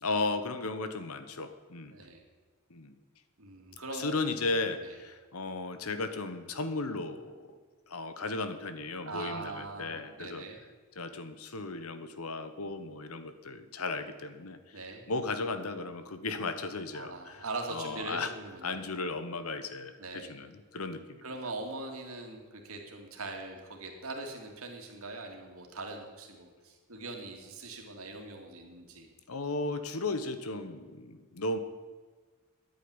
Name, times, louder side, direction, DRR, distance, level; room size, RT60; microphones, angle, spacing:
voice 1, 0.0-2.0 2.7-2.9 3.9-7.6 7.9-10.4 10.9-14.8 15.1-18.3 18.6-21.2 29.3-31.6, left 3 dB, 80° left, 10 dB, 1.2 m, -35 dB
voice 2, 3.4-4.2 4.8-4.9 9.0-10.6 14.7-15.0 16.9-18.8 20.0-20.3 21.2-29.1, right 3 dB, 75° right, 2 dB, 2.5 m, -41 dB
10.0 x 9.2 x 9.8 m, 1.4 s
head